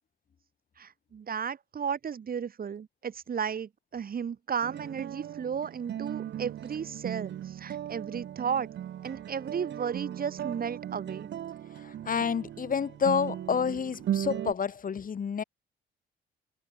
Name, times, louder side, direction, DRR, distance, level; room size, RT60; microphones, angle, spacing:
voice 1, 0.8-8.7 9.0-11.3, right 7 dB, 50° right, 3.0 m, -34 dB
sound 1, 4.6-14.5, right 11 dB, 65° right, 1.4 m, -37 dB
voice 2, 11.8-15.4, left 6 dB, 45° left, 2.3 m, -29 dB
cardioid pair, 90°, 20 cm